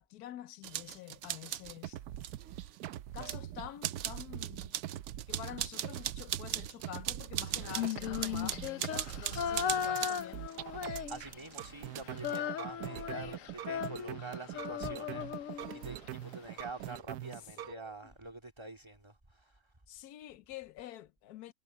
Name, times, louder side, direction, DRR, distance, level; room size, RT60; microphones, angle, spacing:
voice 1, 0.0-2.0 3.1-4.8 5.3-10.5 17.6-17.9 19.9-21.5, left 13 dB, 85° left, 1.2 m, -47 dB
sound 1, 0.6-1.8 2.2-3.4 3.8-10.3 11.5-12.4, right 12 dB, 65° right, 0.8 m, -40 dB
sound 2, 1.6-17.7, right 13 dB, 85° right, 1.2 m, -43 dB
voice 2, 7.4-7.8 10.6-19.7, right 2 dB, 20° right, 2.5 m, -47 dB
Female singing, 7.6-11.5 11.8-16.1, left 9 dB, 65° left, 1.0 m, -37 dB
omnidirectional pair, 1.6 m